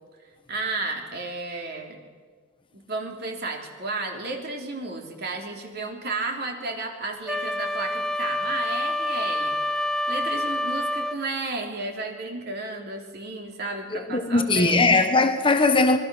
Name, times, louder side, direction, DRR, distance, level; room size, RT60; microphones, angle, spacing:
voice 1, 0.5-2.0 2.7-9.5 10.1-14.9, right 3 dB, 50° right, 3.3 m, -33 dB
Wind instrument woodwind instrument, 7.3-11.3, left 1 dB, 5° left, 0.6 m, -27 dB
voice 2, 13.9-16.0, left 3 dB, 25° left, 1.2 m, -20 dB
26.5 x 20.5 x 6.3 m
head